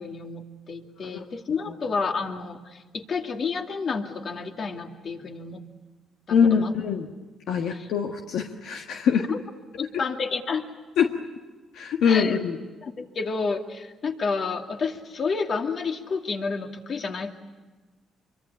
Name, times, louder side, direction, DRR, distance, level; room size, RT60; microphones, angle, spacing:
voice 1, 0.0-5.6 6.3-6.7 7.7-7.9 9.3-9.4 9.8-10.6 12.0-12.4 12.8-17.3, left 4 dB, 50° left, 4 dB, 2.5 m, -30 dB
voice 2, 6.3-7.1 7.5-9.3 11.0-11.1 11.7-12.6, left 7 dB, 80° left, 3 dB, 1.5 m, -23 dB
26.5 x 23.5 x 8.5 m, 1.3 s
cardioid pair, 90°, 0 cm